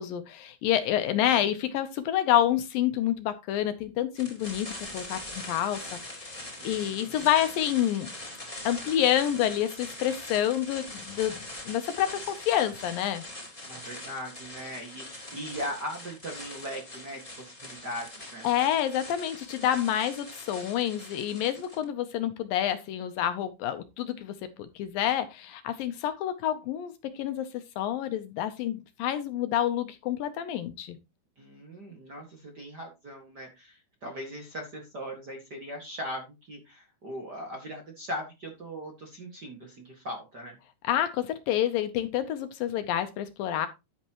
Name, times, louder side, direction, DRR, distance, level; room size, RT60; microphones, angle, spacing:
voice 1, 0.0-5.8 6.1-8.1 8.6-13.2 18.4-31.0 40.8-43.7, left 11 dB, 75° left, 9 dB, 2.3 m, -28 dB
sound 1, 4.2-21.8, left 1 dB, 10° left, 3.2 m, -42 dB
voice 2, 6.6-7.3 13.6-18.5 31.4-40.6, equal, 35° right, 2 dB, 1.7 m, -39 dB
11.0 x 8.6 x 3.0 m, 0.24 s
omnidirectional pair, 4.5 m